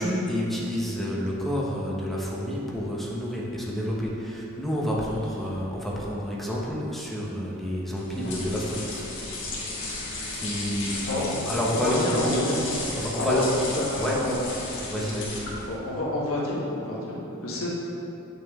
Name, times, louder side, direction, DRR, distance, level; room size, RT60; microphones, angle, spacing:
voice 1, 0.0-9.0 10.3-12.5 12.9-13.6 14.0-14.2 14.9-15.4, equal, ahead, -5 dB, 1.0 m, -29 dB
sound 1, 8.0-15.8, left 2 dB, 60° left, 1.6 m, -34 dB
voice 2, 11.1-11.4 11.7-12.6 13.2-13.4 13.7-14.4 15.6-17.7, left 1 dB, 75° left, -5 dB, 1.5 m, -29 dB
8.6 x 6.2 x 3.6 m, 3.0 s
head